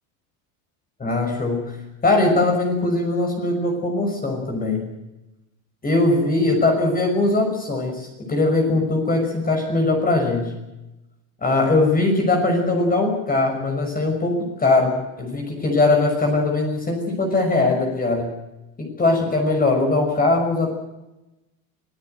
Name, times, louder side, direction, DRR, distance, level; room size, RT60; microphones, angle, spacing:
voice 1, 1.0-1.8 2.0-4.9 5.8-10.5 11.4-18.3 18.8-20.7, left 2 dB, 20° left, 2 dB, 5.9 m, -20 dB
24.5 x 17.0 x 8.0 m, 0.98 s
cardioid pair, 140°, 42 cm